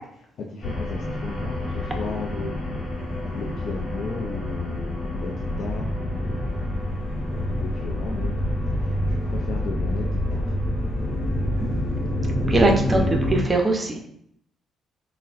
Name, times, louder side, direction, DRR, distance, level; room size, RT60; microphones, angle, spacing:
voice 1, 0.4-2.7 3.3-6.7 7.3-8.5 8.8-10.5 13.4-13.5, left 4 dB, 65° left, -2 dB, 0.4 m, -35 dB
sound 1, 0.6-13.4, left 1 dB, 45° left, 1.1 m, -27 dB
voice 2, 11.6-12.0 12.4-14.1, right 2 dB, 25° right, 2 dB, 0.6 m, -22 dB
3.6 x 2.1 x 2.4 m, 0.68 s
cardioid pair, 90°, 0 cm